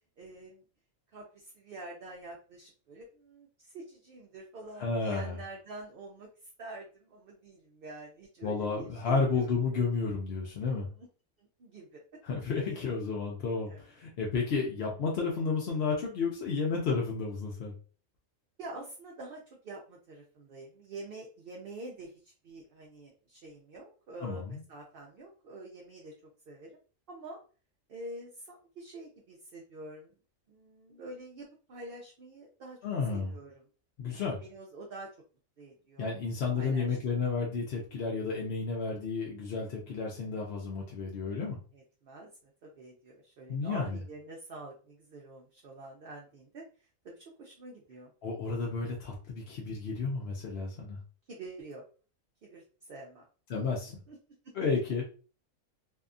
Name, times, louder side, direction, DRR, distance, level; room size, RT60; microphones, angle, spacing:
voice 1, 0.2-0.6 1.1-6.3 6.6-9.8 11.0-11.1 11.4-12.0 12.7-12.9 13.7-13.8 18.6-26.1 26.5-26.7 27.1-27.4 27.9-30.1 30.5-32.8 33.1-33.6 34.1-35.1 35.6-36.1 36.5-36.9 41.7-46.6 47.0-48.1 51.3-51.8 52.4-53.2 54.1-54.2 54.6-54.7, right 2 dB, 60° right, -1 dB, 0.6 m, -47 dB
voice 2, 4.8-5.4 8.4-10.9 12.2-17.7 24.2-24.6 32.8-33.3 34.0-34.4 36.0-41.6 43.5-44.0 48.2-51.0 53.5-54.0 54.5-55.0, left 4 dB, 60° left, -2 dB, 0.7 m, -32 dB
2.7 x 2.3 x 2.4 m, 0.37 s
omnidirectional pair, 1.4 m